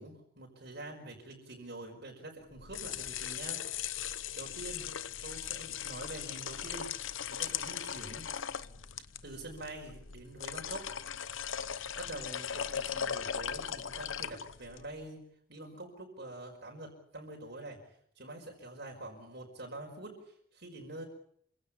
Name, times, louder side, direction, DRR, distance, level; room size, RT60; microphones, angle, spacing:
voice 1, 0.0-3.6 4.2-4.9 5.2-8.3 9.2-10.9 11.7-17.8 18.2-21.1, right 2 dB, 50° right, 0 dB, 5.2 m, -46 dB
sound 1, 2.5-14.9, left 8 dB, 65° left, 0.9 m, -39 dB
28.0 x 17.0 x 8.6 m, 0.69 s
head